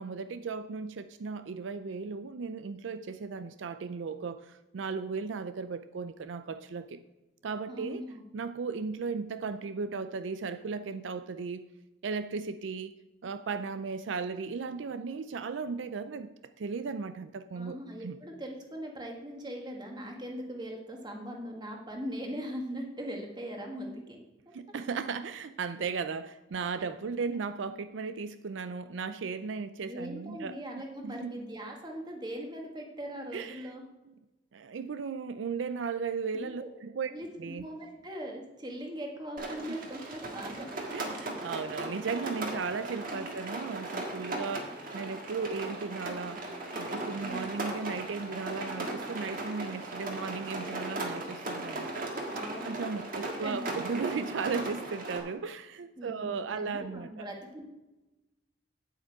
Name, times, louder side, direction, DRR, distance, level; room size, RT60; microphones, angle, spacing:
voice 1, 0.0-7.0 7.4-8.1 8.3-11.7 12.0-12.9 13.2-18.2 24.5-31.4 33.3-33.7 34.5-37.1 37.4-37.7 39.7-39.8 40.9-46.4 46.8-52.1 52.6-57.3, right 5 dB, 80° right, 12 dB, 0.4 m, -36 dB
voice 2, 7.7-8.2 17.5-24.2 26.8-26.9 29.8-33.8 36.3-36.7 37.1-40.7 43.1-43.3 47.2-47.5 52.1-52.7 53.1-53.8 56.0-57.6, equal, 25° right, 1 dB, 1.6 m, -40 dB
Rain, 39.4-55.2, right 2 dB, 50° right, 1.7 m, -37 dB
9.0 x 8.1 x 4.7 m, 1.1 s
head